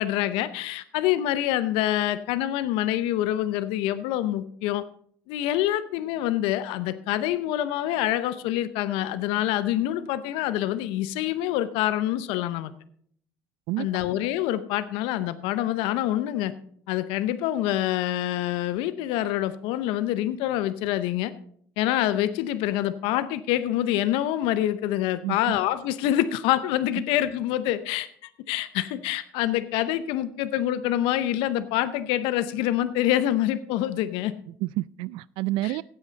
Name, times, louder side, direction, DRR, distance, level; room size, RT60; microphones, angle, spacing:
voice 1, 0.0-4.8 5.3-12.7 13.8-16.5 16.9-21.3 21.8-28.1 28.5-34.3 35.6-35.8, left 13 dB, 75° left, 14 dB, 0.7 m, -26 dB
voice 2, 25.2-25.5 34.5-35.8, right 18 dB, 70° right, 22 dB, 0.4 m, -29 dB
15.5 x 8.1 x 4.0 m, 0.62 s
hypercardioid pair, 70°, 9 cm